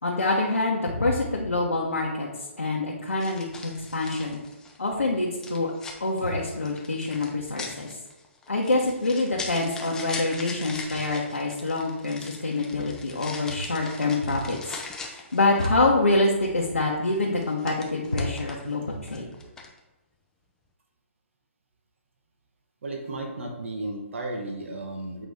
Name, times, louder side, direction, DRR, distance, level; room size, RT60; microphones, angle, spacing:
voice 1, 0.0-2.3 2.6-4.4 4.8-5.7 6.0-7.9 8.5-14.8 15.1-19.3, left 2 dB, 90° left, -4 dB, 1.2 m, -26 dB
sound 1, 1.9-2.1 3.2-4.9 5.4-15.9 17.0-18.8 19.1-19.8, left 4 dB, 10° left, 0.6 m, -41 dB
voice 2, 22.8-25.3, right 2 dB, 65° right, 2 dB, 1.2 m, -34 dB
7.8 x 4.1 x 3.5 m, 1.0 s
figure-of-eight pair, 140°, 7 cm